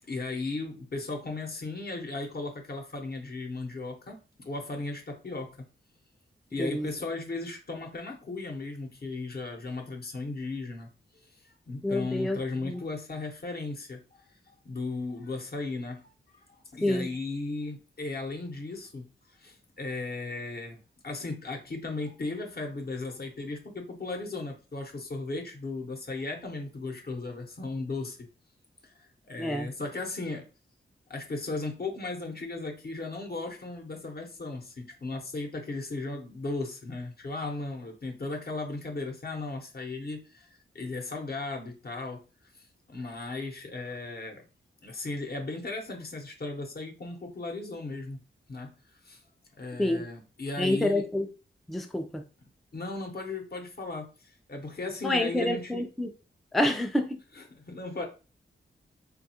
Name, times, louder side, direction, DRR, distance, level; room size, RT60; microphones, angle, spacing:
voice 1, 0.1-5.7 6.5-10.9 11.2-28.3 28.8-30.5 31.1-44.4 44.8-48.2 48.5-49.2 49.6-51.1 52.7-55.8 57.3-58.0, left 3 dB, 50° left, 0.8 m, -36 dB
voice 2, 11.8-12.8 16.8-17.1 29.4-29.7 49.8-50.0 50.6-51.3 51.7-52.2 55.0-56.1 56.5-57.2, left 1 dB, ahead, 0.4 m, -28 dB
3.4 x 2.3 x 2.8 m
wide cardioid pair, 90°, 21 cm